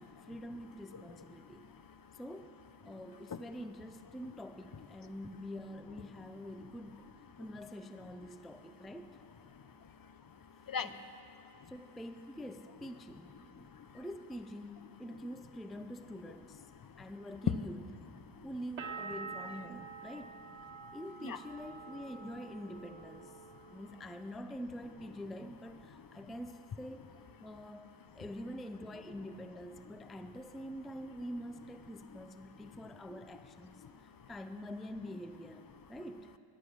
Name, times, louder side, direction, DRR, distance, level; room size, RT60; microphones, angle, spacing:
voice 1, 0.0-1.8 2.1-2.6 2.8-7.1 7.4-9.2 10.8-11.0 11.7-16.6 17.0-17.9 18.4-20.4 20.9-23.4 23.7-27.1 27.4-36.4, equal, ahead, 9 dB, 0.4 m, -46 dB
voice 2, 1.3-2.2 2.9-3.0 3.3-3.4 9.5-11.7 13.4-14.0 16.8-17.1 17.5-17.6 18.3-18.5 20.7-21.0 21.2-21.4 23.4-23.8 25.9-26.2 32.1-32.3 32.7-32.8 33.7-34.3, left 7 dB, 45° left, 12 dB, 0.6 m, -43 dB
sound 1, 18.8-24.4 24.7-25.5, right 5 dB, 75° right, 1.3 m, -48 dB
19.0 x 11.5 x 6.3 m, 2.7 s
wide cardioid pair, 135°, 49 cm